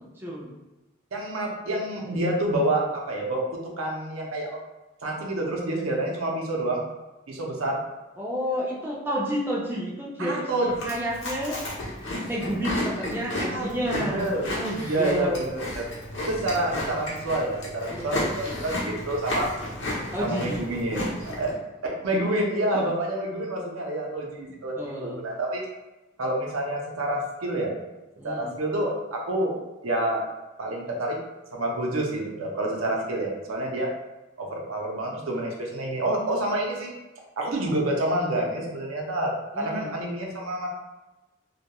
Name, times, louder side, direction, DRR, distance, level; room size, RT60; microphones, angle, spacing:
voice 1, 0.2-0.6 8.2-11.6 12.3-15.5 17.9-18.3 20.1-20.7 24.5-25.2 28.2-28.5 35.3-35.4 39.5-39.9, equal, 10° right, -5 dB, 0.3 m, -30 dB
voice 2, 1.1-3.4 3.8-4.6 5.0-6.8 7.3-7.8 10.2-11.1 13.5-14.5 14.8-15.6 16.2-19.5 20.2-21.5 21.8-25.6 26.2-27.8 28.2-29.5 29.8-30.2 30.6-31.2 31.5-33.9 34.4-36.9 37.4-40.7, right 1 dB, 90° right, -1 dB, 0.6 m, -28 dB
Chewing mastication, 10.7-21.5, left 1 dB, 65° left, 0.7 m, -33 dB
2.2 x 2.2 x 2.9 m, 1.1 s
head